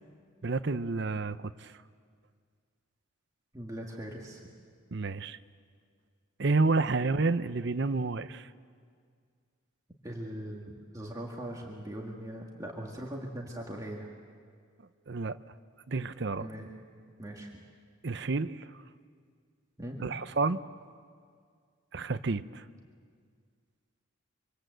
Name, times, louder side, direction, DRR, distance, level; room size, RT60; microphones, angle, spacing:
voice 1, 0.4-1.7 4.9-5.4 6.4-8.5 15.1-15.4 15.9-16.5 18.0-18.6 20.0-20.6 21.9-22.6, right 3 dB, 55° right, 12 dB, 0.7 m, -30 dB
voice 2, 3.5-4.4 10.0-14.1 16.4-16.7 17.2-17.6 19.8-20.1, right 1 dB, 15° right, -2 dB, 2.0 m, -40 dB
25.5 x 25.0 x 7.9 m, 2.1 s
head